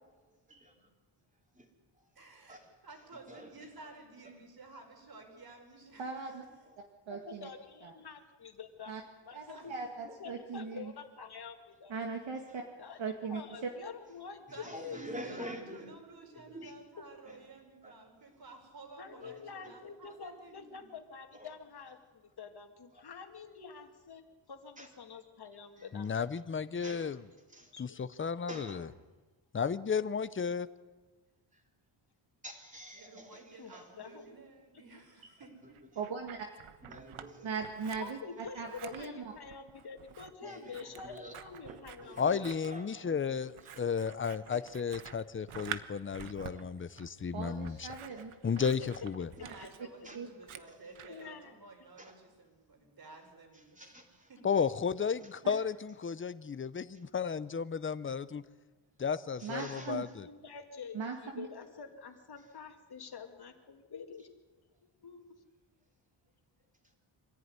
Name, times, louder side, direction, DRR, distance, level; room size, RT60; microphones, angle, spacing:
voice 1, 2.1-6.4 8.9-9.0 9.3-10.1 14.4-20.9 32.9-35.7 49.3-54.0 54.3-54.4, right 3 dB, 45° right, 4 dB, 4.9 m, -53 dB
voice 2, 6.0-6.4 7.1-7.5 7.8-7.9 8.9-9.0 9.3-9.4 9.7-10.9 11.9-12.6 13.0-13.7 36.0-36.5 37.4-38.2 38.6-39.2 47.3-48.7 50.1-50.3 55.4-55.6 59.4-60.0 60.9-61.5, right 5 dB, 65° right, 2 dB, 2.1 m, -39 dB
voice 3, 7.1-9.0 9.3-9.7 10.2-12.0 12.8-15.1 15.4-15.5 16.6-16.7 19.0-26.1 26.8-27.0 27.7-27.9 33.3-34.3 37.9-42.4 48.8-48.9 49.2-49.3 49.6-49.7 51.0-51.5 60.1-64.3 64.8-65.3, left 6 dB, 50° left, 5 dB, 2.3 m, -47 dB
voice 4, 14.6-15.9 16.5-16.7 17.3-17.4 17.8-17.9 19.2-19.3 24.8-24.9 26.8-27.1 27.5-27.7 28.5-28.8 32.4-33.4 36.9-37.5 40.4-41.3 41.7-43.3 44.5-44.6 46.5-46.7 48.1-48.3 50.0-50.2 52.0-52.1 53.8-54.3 55.2-55.3 59.4-60.0, equal, 15° right, 2 dB, 3.5 m, -47 dB
voice 5, 25.9-27.2 27.8-28.9 29.5-30.7 42.2-47.9 48.4-49.3 54.4-58.4 59.0-60.3, left 6 dB, 25° left, 14 dB, 0.7 m, -33 dB
Scissors, 35.7-37.3 37.6-51.2, right 9 dB, 85° right, 1.2 m, -49 dB
25.0 x 15.5 x 9.6 m, 1.3 s
wide cardioid pair, 165°, 49 cm